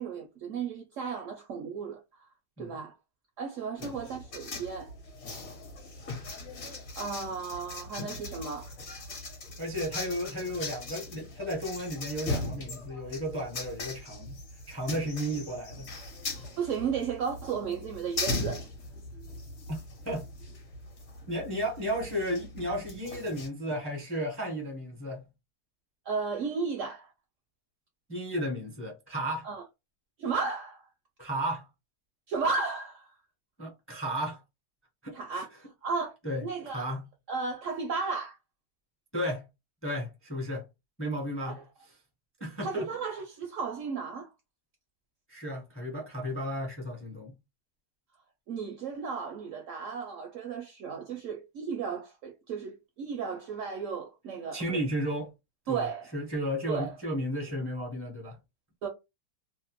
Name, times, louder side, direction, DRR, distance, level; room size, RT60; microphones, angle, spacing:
voice 1, 0.0-2.3 2.6-2.9 3.4-4.9 7.0-8.7 16.4-18.6 26.1-27.1 29.4-29.6 30.2-30.9 32.3-33.2 35.1-36.1 36.4-36.9 37.3-38.4 41.5-41.6 42.6-44.3 48.5-54.8 55.7-56.1 56.7-56.9 58.8-58.9, right 5 dB, 70° right, 0.7 m, -34 dB
sound 1, 3.8-23.5, left 2 dB, 50° left, 1.0 m, -39 dB
voice 2, 9.6-14.4 14.7-15.9 19.7-20.2 21.3-25.3 28.1-29.5 31.2-31.6 33.6-34.4 35.0-35.5 36.2-37.0 39.1-39.4 39.8-40.7 41.0-41.6 42.4-42.8 45.3-47.4 54.5-55.3 55.7-55.9 56.1-58.4, equal, 15° left, 0.6 m, -34 dB
2.7 x 2.1 x 2.9 m
omnidirectional pair, 1.7 m